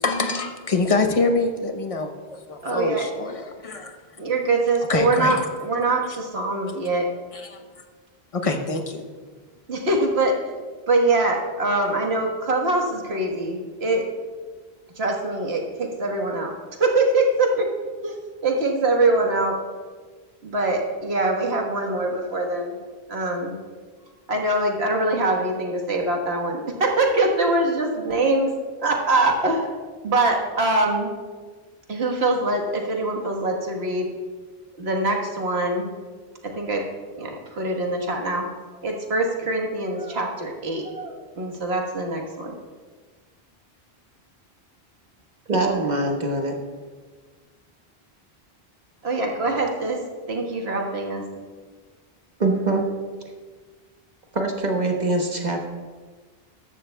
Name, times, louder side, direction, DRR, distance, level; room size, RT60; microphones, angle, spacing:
voice 1, 0.0-3.8 4.9-5.4 7.3-7.6 8.3-9.1, left 3 dB, 35° left, 5 dB, 0.9 m, -25 dB
voice 2, 2.6-3.1 4.2-7.1 9.7-10.4 10.9-14.0 15.0-16.5 16.8-17.7 18.0-18.2 18.4-19.6 20.4-22.8 23.1-23.5 24.3-28.5 28.8-29.7 30.0-31.1 31.9-34.1 34.8-35.9 36.4-36.9 37.2-38.4 38.8-42.6 49.0-50.0 50.3-51.2, right 2 dB, 80° right, 1 dB, 1.7 m, -23 dB
voice 3, 45.5-46.5 52.4-52.9 54.3-55.7, right 2 dB, 45° right, 2 dB, 1.3 m, -23 dB
14.0 x 11.5 x 2.2 m, 1.4 s
omnidirectional pair, 1.1 m